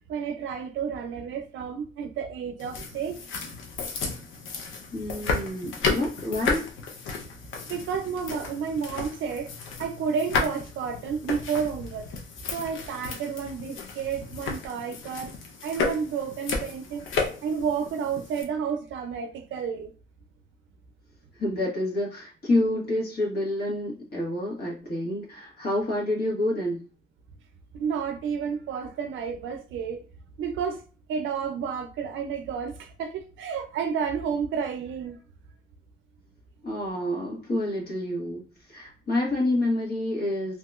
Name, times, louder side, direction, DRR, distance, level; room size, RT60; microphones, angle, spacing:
voice 1, 0.1-3.2 7.7-9.5 9.8-12.1 12.5-15.3 15.6-17.0 17.4-19.9 27.7-30.0 30.4-30.8 31.1-35.2, right 6 dB, 75° right, 0.5 m, -31 dB
sound 1, 2.6-18.4, left 4 dB, 85° left, 0.7 m, -33 dB
voice 2, 4.9-6.7 21.4-26.8 36.6-38.4 38.7-40.6, left 1 dB, 50° left, 1.6 m, -28 dB
2.9 x 2.8 x 2.4 m
cardioid pair, 90°, 20 cm